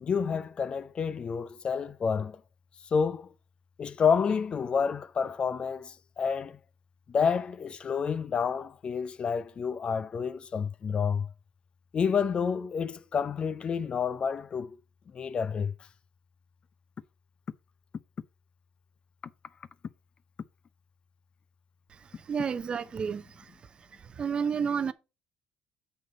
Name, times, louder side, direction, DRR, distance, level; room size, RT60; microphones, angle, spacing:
voice 1, 0.0-2.4 2.9-3.3 3.8-6.6 7.1-11.3 11.9-14.8 15.1-15.7, left 6 dB, 40° left, 0.5 m, -29 dB
voice 2, 22.3-23.5 24.2-24.9, right 6 dB, 35° right, 0.7 m, -30 dB
6.8 x 6.6 x 4.3 m
cardioid pair, 100°, 3 cm